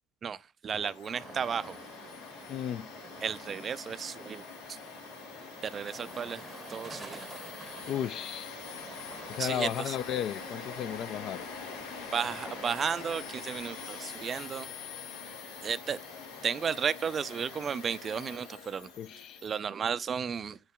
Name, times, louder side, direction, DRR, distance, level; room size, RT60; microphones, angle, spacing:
voice 1, 0.2-1.8 3.2-4.4 4.7-4.8 5.6-6.4 6.7-7.3 9.4-10.0 12.1-14.7 15.6-16.0 16.4-18.9 19.4-20.6, right 7 dB, 35° right, 0.4 m, -33 dB
Domestic sounds home sounds, 0.7-19.6, left 5 dB, 75° left, 1.2 m, -44 dB
sound 1, 1.1-17.8, right 3 dB, 20° right, 0.8 m, -51 dB
voice 2, 2.5-2.9 7.9-8.5 9.3-11.5 19.0-19.4, left 10 dB, 50° left, 0.3 m, -34 dB
8.2 x 5.8 x 2.2 m
hypercardioid pair, 70°, 0 cm